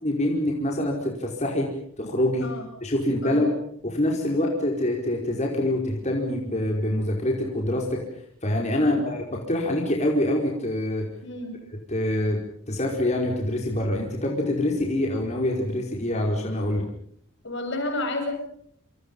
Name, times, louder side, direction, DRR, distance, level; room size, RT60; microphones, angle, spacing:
voice 1, 0.0-1.7 2.0-2.5 2.8-3.5 3.8-8.0 8.4-11.0 11.9-12.4 12.7-16.9, left 1 dB, 30° left, 0 dB, 4.9 m, -25 dB
voice 2, 11.2-11.6 17.4-18.3, left 2 dB, 55° left, 4 dB, 7.9 m, -31 dB
28.0 x 27.5 x 5.5 m, 0.65 s
head